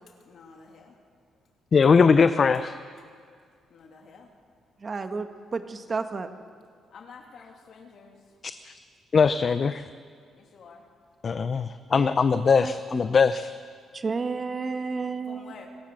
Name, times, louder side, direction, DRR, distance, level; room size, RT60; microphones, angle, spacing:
voice 1, 0.2-1.0 3.7-4.3 6.9-8.2 10.3-10.9 11.5-12.3 14.1-14.2 15.3-15.7, left 5 dB, 60° left, 2 dB, 2.9 m, -50 dB
voice 2, 1.7-2.7 8.7-8.8 9.1-9.8 11.2-13.5, left 5 dB, 45° left, 12 dB, 0.6 m, -21 dB
voice 3, 4.8-6.3 11.9-13.0 13.9-15.5, right 4 dB, 35° right, 7 dB, 1.5 m, -32 dB
27.5 x 15.0 x 6.6 m, 2.1 s
cardioid pair, 90°, 0 cm